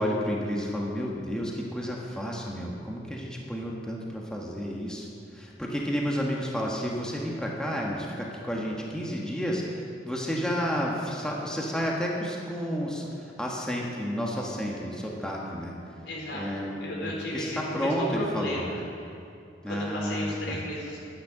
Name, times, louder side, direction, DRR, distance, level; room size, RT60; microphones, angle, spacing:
voice 1, 0.0-15.7 16.3-18.6 19.6-20.6, equal, 5° left, -3 dB, 1.5 m, -31 dB
voice 2, 16.1-16.5 16.8-19.2 19.7-21.0, equal, 80° left, -3 dB, 3.9 m, -35 dB
11.5 x 10.5 x 7.5 m, 2.6 s
head